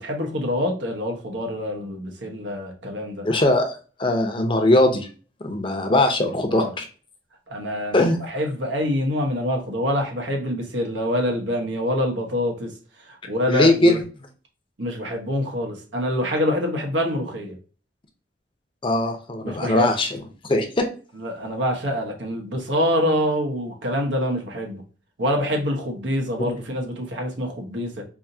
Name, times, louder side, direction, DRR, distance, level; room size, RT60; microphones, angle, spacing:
voice 1, 0.0-3.3 6.5-6.7 7.5-12.7 13.2-14.0 14.8-17.6 19.4-19.9 21.1-24.8 25.2-28.1, equal, 90° right, 2 dB, 1.1 m, -25 dB
voice 2, 3.2-3.7 4.0-5.1 5.4-6.8 7.9-8.2 13.5-14.0 18.8-20.2 20.5-20.9 26.5-26.6, left 1 dB, 30° left, 5 dB, 0.6 m, -20 dB
4.7 x 2.7 x 2.7 m, 0.37 s
head